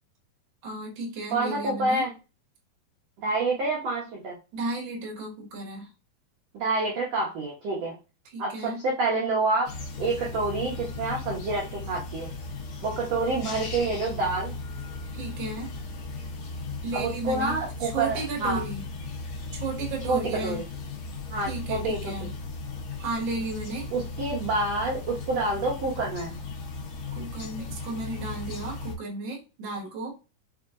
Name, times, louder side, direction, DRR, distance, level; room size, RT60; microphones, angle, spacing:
voice 1, 0.6-2.1 4.5-5.9 8.2-8.8 15.1-15.7 16.8-18.8 19.5-20.6 21.4-22.3 23.0-23.9 27.1-30.2, right 2 dB, 75° right, -2 dB, 1.1 m, -34 dB
voice 2, 1.3-2.1 3.2-4.4 6.5-8.0 8.4-9.7 10.0-12.3 12.8-14.5 16.9-18.6 20.1-20.6 21.3-22.1 23.9-26.4, right 3 dB, 90° right, -4 dB, 1.4 m, -28 dB
sound 1, 9.6-28.9, left 3 dB, 75° left, 1.5 m, -37 dB
5.8 x 2.7 x 2.5 m, 0.30 s
omnidirectional pair, 4.5 m